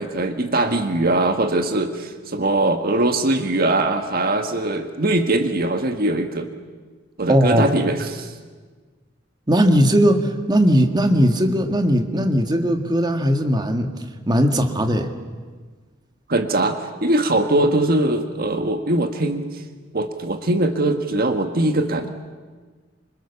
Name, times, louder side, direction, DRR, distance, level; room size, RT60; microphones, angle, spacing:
voice 1, 0.0-6.5 7.2-8.3 16.3-19.4 19.9-22.1, right 2 dB, 50° right, 6 dB, 1.6 m, -21 dB
voice 2, 7.3-7.7 9.5-13.9 14.3-15.1, equal, 20° right, 5 dB, 1.9 m, -18 dB
26.5 x 26.0 x 7.2 m, 1.4 s
head